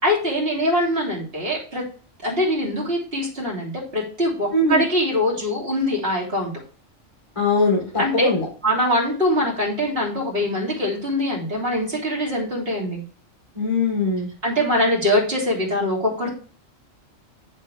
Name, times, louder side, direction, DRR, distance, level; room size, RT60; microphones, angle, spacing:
voice 1, 0.0-1.8 2.2-6.5 8.0-8.3 8.6-13.0 14.4-16.3, left 1 dB, 50° right, -3 dB, 3.5 m, -23 dB
voice 2, 4.5-4.8 7.3-8.5 13.5-14.3, left 2 dB, 25° left, -5 dB, 3.5 m, -21 dB
7.5 x 6.9 x 3.3 m, 0.40 s
omnidirectional pair, 1.3 m